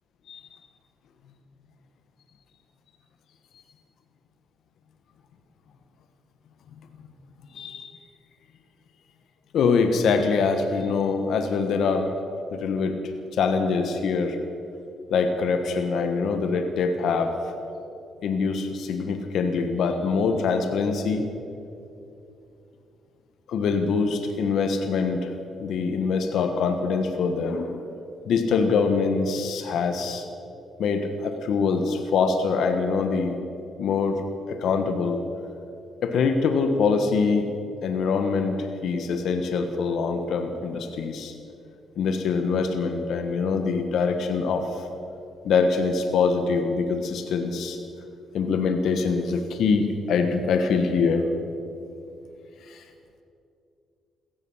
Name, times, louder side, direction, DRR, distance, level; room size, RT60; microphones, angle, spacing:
voice 1, 7.5-8.0 9.5-12.2 12.5-13.0 13.3-14.4 15.1-17.5 18.2-21.2 23.5-25.3 25.6-27.8 28.3-30.3 30.8-33.4 33.8-34.2 34.5-35.2 36.0-37.5 37.8-41.3 42.0-44.9 45.4-47.8 48.3-51.3 52.7-52.8, left 5 dB, 70° left, 6 dB, 1.3 m, -24 dB
16.0 x 15.0 x 5.6 m, 2.7 s
cardioid pair, 90°, 0 cm